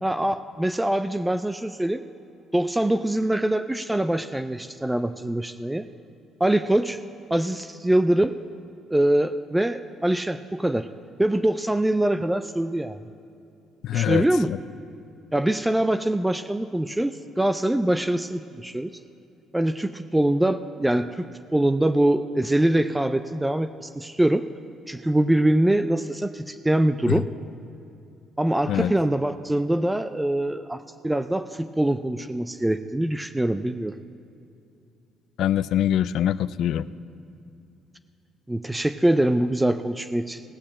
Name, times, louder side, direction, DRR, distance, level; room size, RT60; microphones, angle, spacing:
voice 1, 0.0-2.0 2.5-5.9 6.4-7.0 7.3-8.4 8.9-10.9 11.2-13.0 13.9-14.5 15.3-18.9 19.5-24.5 24.9-27.3 28.4-30.8 31.0-34.0 38.5-40.4, right 1 dB, 10° right, 10 dB, 0.3 m, -23 dB
voice 2, 13.8-14.2 14.5-14.6 27.1-27.2 28.7-28.9 35.4-36.9, left 11 dB, 70° left, 17 dB, 0.3 m, -23 dB
17.0 x 6.7 x 7.3 m, 2.6 s
cardioid pair, 110°, 0 cm